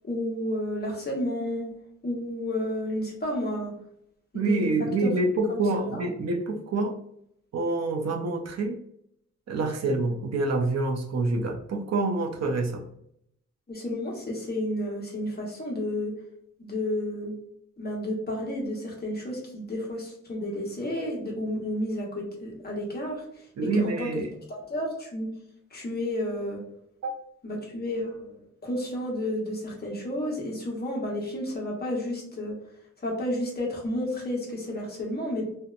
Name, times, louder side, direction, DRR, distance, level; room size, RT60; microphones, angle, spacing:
voice 1, 0.0-1.7 2.0-3.7 4.3-4.9 5.5-5.6 5.9-6.0 13.7-16.1 16.6-17.3 17.8-24.1 24.5-25.3 25.7-26.6 27.4-32.5 33.0-35.5, left 1 dB, 35° left, -2 dB, 0.9 m, -31 dB
voice 2, 4.3-7.0 7.5-8.8 9.5-12.8 23.6-24.3 27.0-27.1, right 2 dB, 60° right, 3 dB, 0.5 m, -27 dB
2.7 x 2.0 x 2.4 m, 0.72 s
wide cardioid pair, 110°, 29 cm